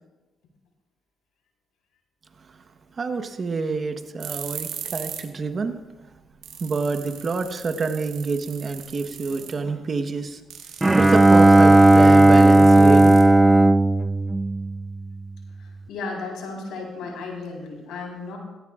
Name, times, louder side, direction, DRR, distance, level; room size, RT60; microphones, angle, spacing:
voice 1, 3.0-5.8 6.6-10.4 11.0-13.2, right 4 dB, 45° right, 7 dB, 1.2 m, -27 dB
sound 1, 4.2-5.3 5.6-5.7 6.2-6.3 6.4-9.7 10.5-13.6, right 9 dB, 85° right, 2.1 m, -38 dB
Bowed string instrument, 10.8-15.2, right 1 dB, 15° right, 0.6 m, -14 dB
voice 2, 15.6-18.4, left 3 dB, 85° left, 0 dB, 4.2 m, -34 dB
17.0 x 17.0 x 2.5 m, 1.2 s
cardioid pair, 80°, 0 cm